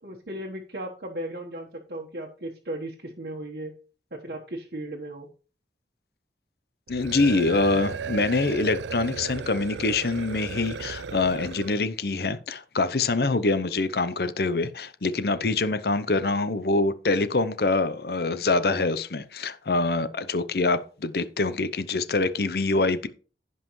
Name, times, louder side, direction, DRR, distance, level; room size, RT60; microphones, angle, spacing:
voice 1, 0.0-3.7 4.1-5.3, right 1 dB, 60° right, 1.3 m, -36 dB
voice 2, 6.9-23.1, left 3 dB, 60° left, 0.7 m, -25 dB
sound 1, 6.9-11.9, right 5 dB, 90° right, 0.4 m, -35 dB
16.0 x 5.5 x 3.1 m
head